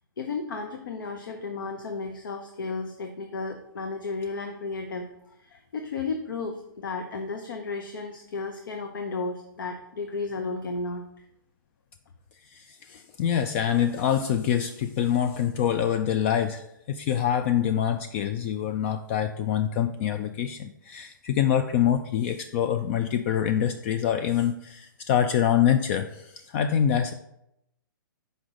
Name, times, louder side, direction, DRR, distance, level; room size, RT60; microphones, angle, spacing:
voice 1, 0.2-11.0, left 3 dB, 70° left, 4 dB, 0.7 m, -33 dB
voice 2, 12.5-27.1, left 9 dB, 35° left, 8 dB, 0.3 m, -25 dB
6.1 x 5.2 x 3.7 m, 0.82 s
hypercardioid pair, 130°, 11 cm